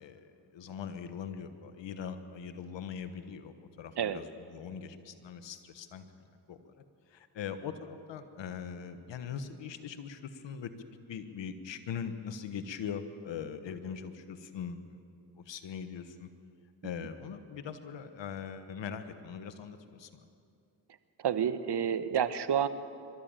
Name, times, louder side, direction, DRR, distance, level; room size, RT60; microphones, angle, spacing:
voice 1, 0.0-6.0 6.5-6.7 7.1-10.7 11.1-15.0 15.4-16.3 16.8-20.2, left 7 dB, 85° left, 10 dB, 1.2 m, -41 dB
voice 2, 21.2-22.7, right 8 dB, 65° right, 12 dB, 1.1 m, -29 dB
23.0 x 13.0 x 8.9 m, 2.5 s
supercardioid pair, 40°, 43 cm